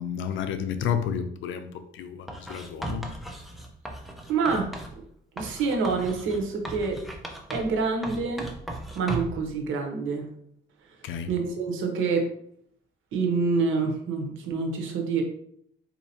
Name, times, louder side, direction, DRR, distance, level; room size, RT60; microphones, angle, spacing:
voice 1, 0.0-3.1 11.0-11.3, left 8 dB, 80° left, 10 dB, 0.5 m, -31 dB
Writing, 2.3-5.0 5.4-7.8 8.0-9.4, right 1 dB, ahead, 0.6 m, -37 dB
voice 2, 4.3-4.7 5.0-5.1 5.4-7.0 7.5-8.5 8.9-10.3 11.3-12.3 13.1-15.2, right 4 dB, 80° right, 2 dB, 0.9 m, -27 dB
4.3 x 2.8 x 2.7 m, 0.68 s
cardioid pair, 90°, 20 cm